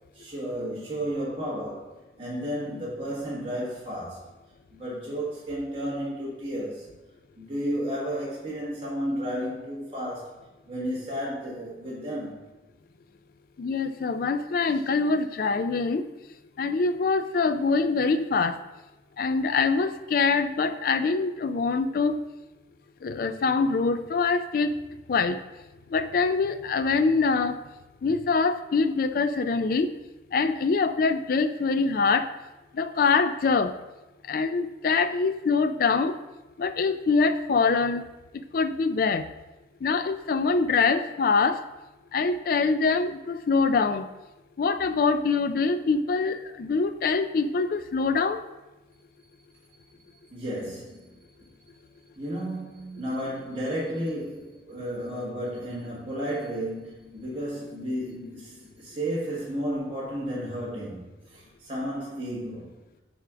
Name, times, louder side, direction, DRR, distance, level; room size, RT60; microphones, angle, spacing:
voice 1, 0.1-1.9 2.2-4.2 4.7-6.9 7.4-10.4 10.7-12.5 50.3-51.2 52.2-62.7, equal, 30° right, -8 dB, 1.3 m, -33 dB
voice 2, 13.6-16.1 16.6-18.6 19.2-22.2 23.0-24.7 25.1-25.4 25.9-27.6 28.0-29.9 30.3-32.3 32.7-33.7 34.3-36.1 36.6-38.0 38.5-39.3 39.8-41.6 42.1-44.1 44.6-48.4, left 4 dB, 50° left, 11 dB, 0.3 m, -24 dB
5.6 x 3.6 x 4.9 m, 1.1 s
head